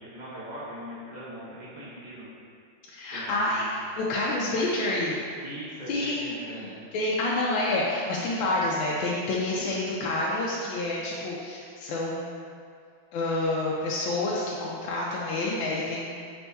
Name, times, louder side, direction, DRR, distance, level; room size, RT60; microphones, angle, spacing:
voice 1, 0.0-2.3 3.1-3.9 5.4-6.9 9.5-9.8, equal, 35° right, -9 dB, 0.7 m, -41 dB
voice 2, 2.9-5.2 5.9-12.5 13.1-16.3, left 2 dB, 80° left, -5 dB, 1.3 m, -28 dB
5.1 x 4.1 x 2.2 m, 2.3 s
omnidirectional pair, 2.1 m